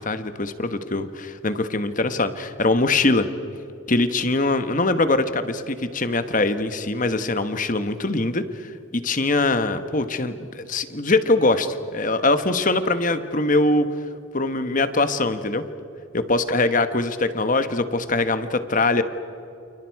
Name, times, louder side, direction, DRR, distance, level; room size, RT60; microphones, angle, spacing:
voice 1, 0.0-3.3 3.9-13.9 14.3-15.6 16.1-19.0, left 2 dB, 40° left, 10 dB, 1.2 m, -22 dB
29.5 x 29.0 x 4.8 m, 2.9 s
head